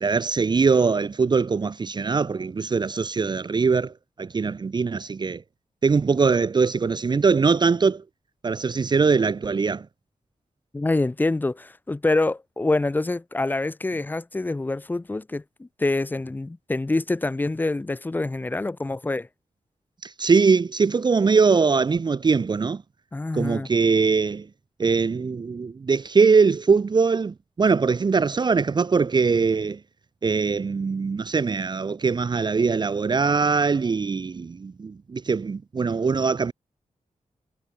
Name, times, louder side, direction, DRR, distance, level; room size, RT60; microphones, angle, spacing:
voice 1, 0.0-5.4 5.8-8.0 8.4-9.9 20.0-22.8 23.3-24.5 24.8-29.8 30.2-36.5, right 5 dB, 35° right, 0.7 m, -22 dB
voice 2, 10.7-19.3 23.1-23.7, left 2 dB, 15° left, 0.5 m, -26 dB
wide cardioid pair, 170°, 13 cm